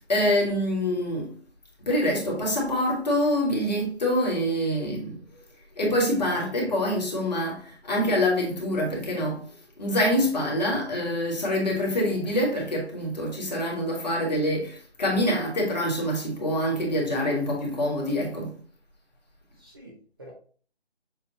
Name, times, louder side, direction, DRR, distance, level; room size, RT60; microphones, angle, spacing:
voice 1, 0.1-1.3 1.9-5.2 5.8-9.4 9.8-18.5, left 1 dB, 40° left, 1.7 m, -25 dB
voice 2, 19.6-20.3, right 1 dB, 20° right, 0.7 m, -47 dB
6.9 x 2.5 x 2.8 m
figure-of-eight pair, 160°, 33 cm